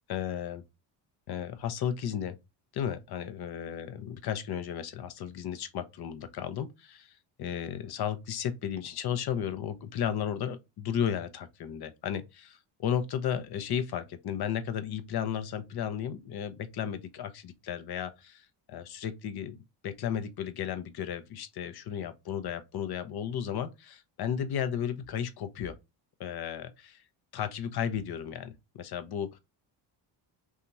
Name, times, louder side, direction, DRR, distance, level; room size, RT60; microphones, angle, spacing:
voice 1, 0.1-0.6 1.3-2.4 2.7-25.8 26.2-27.0 27.3-29.4, left 9 dB, 50° left, 0.7 m, -34 dB
2.8 x 2.4 x 4.0 m
cardioid pair, 85°, 48 cm